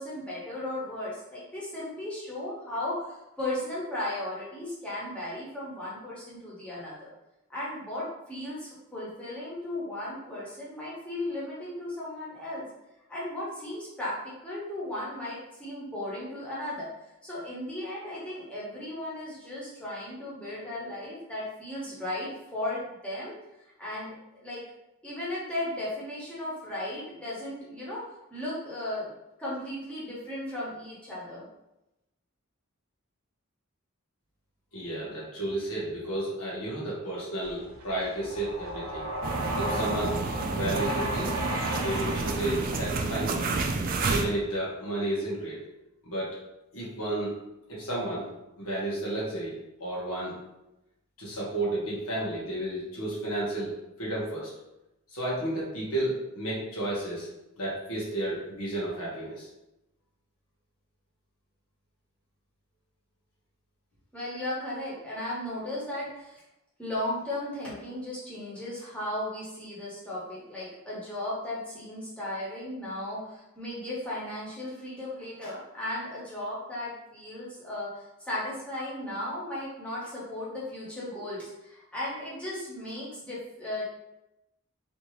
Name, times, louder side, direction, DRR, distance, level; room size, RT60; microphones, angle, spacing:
voice 1, 0.0-7.1 7.5-12.7 13.1-16.9 17.2-23.3 23.8-24.6 25.0-28.0 28.3-29.1 29.4-31.4 64.1-66.4 66.8-83.8, left 1 dB, 5° left, -8 dB, 1.0 m, -36 dB
voice 2, 34.7-39.1 39.5-40.2 40.5-41.4 41.8-43.5 44.1-45.6 46.0-46.4 46.7-47.4 47.7-48.3 48.6-49.5 49.8-50.3 51.2-54.5 55.1-57.3 57.6-59.5, right 1 dB, 80° left, -6 dB, 1.4 m, -32 dB
sound 1, 37.4-43.6, right 1 dB, 90° right, 0.8 m, -34 dB
sound 2, 39.2-44.2, right 3 dB, 40° right, 0.3 m, -30 dB
3.4 x 2.7 x 3.0 m, 0.92 s
head